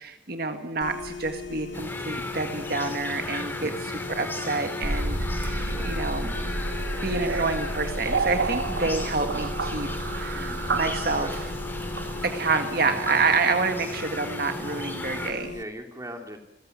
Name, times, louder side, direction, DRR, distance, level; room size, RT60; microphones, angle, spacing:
voice 1, 0.0-3.7 4.1-6.3 7.0-9.9 10.2-11.4 12.2-15.6, right 4 dB, 50° right, 6 dB, 1.8 m, -28 dB
sound 1, 0.8-15.6, left 5 dB, 75° left, 1.1 m, -39 dB
sound 2, 1.7-15.3, left 1 dB, 10° left, 2.8 m, -36 dB
voice 2, 3.3-3.9 5.6-6.0 10.3-11.4 15.5-16.4, equal, 15° right, 5 dB, 2.9 m, -41 dB
sound 3, 4.8-14.8, right 2 dB, 80° right, 1.9 m, -31 dB
29.5 x 15.0 x 9.4 m, 0.89 s
head